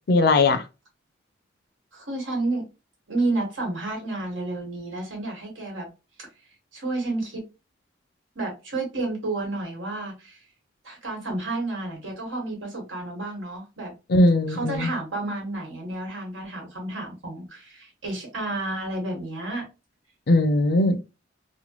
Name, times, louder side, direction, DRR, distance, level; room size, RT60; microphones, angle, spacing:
voice 1, 0.1-0.6 14.1-14.9 20.3-21.0, left 2 dB, 55° left, 0.4 m, -19 dB
voice 2, 1.9-2.6 3.1-5.9 6.7-7.4 8.3-10.4 10.8-13.9 14.5-19.6, right 2 dB, 90° right, 1.5 m, -30 dB
3.1 x 2.2 x 2.9 m
head